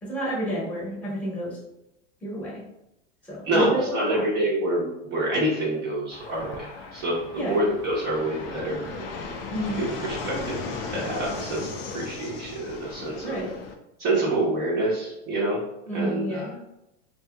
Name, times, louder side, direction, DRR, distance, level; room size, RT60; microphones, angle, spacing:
voice 1, 0.1-1.6 2.2-2.6 3.3-4.2 7.3-7.6 9.5-9.8 13.2-13.5 15.9-16.6, equal, 5° left, -6 dB, 0.9 m, -30 dB
voice 2, 3.4-9.1 9.8-10.6 10.9-13.4 14.0-15.6 15.9-16.5, right 1 dB, 30° right, -6 dB, 0.6 m, -27 dB
Fixed-wing aircraft airplane, 6.1-13.7, left 4 dB, 40° left, 0.4 m, -36 dB
2.7 x 2.7 x 2.2 m, 0.89 s
supercardioid pair, 140°, 37 cm